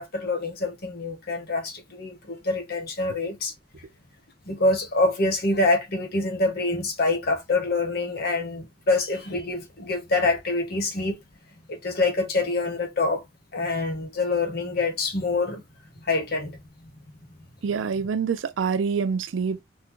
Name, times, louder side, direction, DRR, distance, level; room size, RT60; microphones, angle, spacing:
voice 1, 0.0-3.5 4.5-11.2 11.7-13.2 13.5-15.6 16.0-16.6, left 2 dB, 55° left, 0.9 m, -25 dB
voice 2, 17.6-19.6, right 6 dB, 85° right, 0.4 m, -26 dB
3.6 x 2.2 x 3.0 m
head